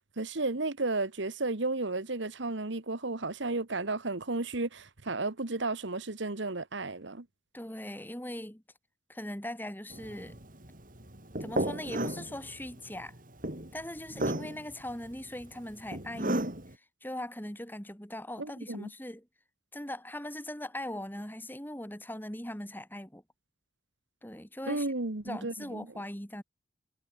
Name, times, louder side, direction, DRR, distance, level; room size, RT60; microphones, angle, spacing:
voice 1, 0.2-7.2 18.4-18.9 24.7-25.9, right 2 dB, 65° right, 1.5 m, -33 dB
voice 2, 7.5-8.6 9.1-10.4 11.4-13.1 13.7-16.5 17.0-19.3 19.7-23.2 24.2-24.9 25.2-26.4, left 1 dB, 10° left, 3.7 m, -40 dB
sound 1, 9.9-16.7, right 1 dB, 45° right, 3.8 m, -35 dB
head